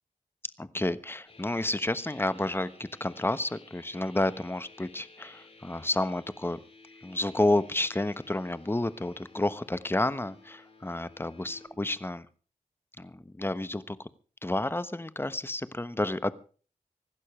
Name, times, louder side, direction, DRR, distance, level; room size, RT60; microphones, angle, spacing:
voice 1, 0.6-6.6 7.0-12.3 13.0-14.1 14.4-16.3, left 1 dB, 15° left, 14 dB, 1.2 m, -30 dB
sound 1, 1.3-11.7, left 3 dB, 50° left, 6.2 m, -55 dB
25.5 x 12.0 x 3.3 m, 0.38 s
wide cardioid pair, 80°, 14 cm